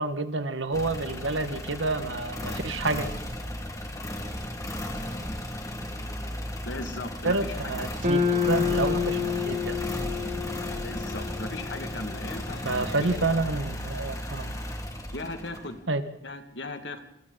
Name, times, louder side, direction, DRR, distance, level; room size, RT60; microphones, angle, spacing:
voice 1, 0.0-3.1 7.2-9.2 9.5-9.8 12.6-14.6 15.9-16.0, right 3 dB, 85° right, 9 dB, 1.7 m, -29 dB
sound 1, 0.7-15.8, left 1 dB, 15° left, 2.4 m, -35 dB
voice 2, 6.6-7.8 10.8-12.7 13.0-13.2 15.1-15.8 16.2-17.0, left 2 dB, 70° left, 7 dB, 2.2 m, -37 dB
sound 2, 8.0-12.4, left 6 dB, 40° right, 2.6 m, -29 dB
27.0 x 26.5 x 4.1 m, 0.77 s
head